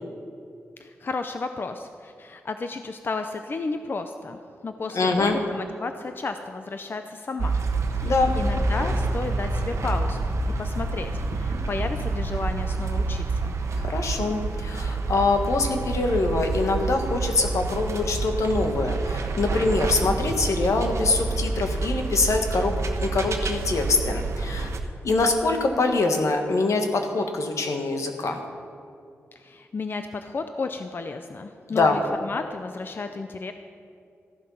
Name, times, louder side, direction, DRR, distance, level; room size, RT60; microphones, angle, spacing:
voice 1, 0.8-7.6 8.0-10.3 10.6-13.5 29.4-33.5, left 3 dB, 45° left, 7 dB, 0.6 m, -33 dB
voice 2, 4.9-5.4 8.0-8.4 13.8-22.7 23.0-24.7 25.0-28.4 31.7-32.0, left 3 dB, 80° left, 4 dB, 1.5 m, -24 dB
sound 1, 7.4-24.8, right 3 dB, 70° right, 1.1 m, -28 dB
14.5 x 11.5 x 5.6 m, 2.4 s
wide cardioid pair, 120°, 5 cm